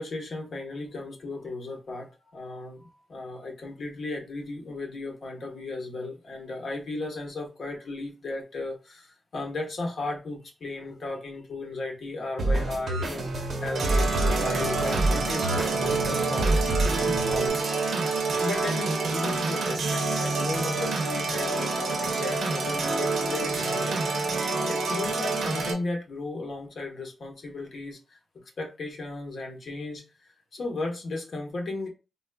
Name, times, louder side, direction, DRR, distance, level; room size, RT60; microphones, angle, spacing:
voice 1, 0.0-17.6 17.9-24.0 24.5-28.2 28.6-31.9, left 2 dB, 55° left, 1 dB, 1.1 m, -35 dB
sound 1, 12.4-17.5, right 2 dB, 60° right, 1.0 m, -27 dB
sound 2, 13.8-25.7, right 3 dB, 80° right, 0.6 m, -27 dB
4.0 x 2.3 x 2.2 m, 0.30 s
wide cardioid pair, 140°, 0 cm